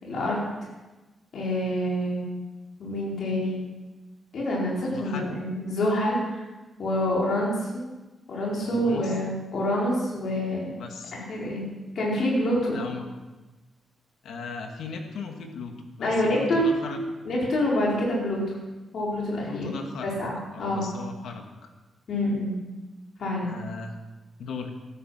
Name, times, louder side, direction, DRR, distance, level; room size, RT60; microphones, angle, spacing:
voice 1, 0.0-0.4 1.3-2.2 2.8-3.7 4.3-6.4 6.8-7.8 8.3-10.7 11.1-11.6 11.9-12.8 16.0-16.7 17.2-18.4 18.9-19.7 20.0-20.9 22.1-22.6 23.2-23.5, left 1 dB, 55° left, -4 dB, 4.8 m, -26 dB
voice 2, 4.7-5.3 8.6-9.1 10.8-11.2 12.7-13.1 14.2-17.1 19.4-20.1 20.5-21.4 23.4-24.0 24.4-24.7, left 4 dB, 80° left, 4 dB, 2.1 m, -37 dB
14.5 x 12.5 x 5.8 m, 1.2 s
wide cardioid pair, 155°, 0 cm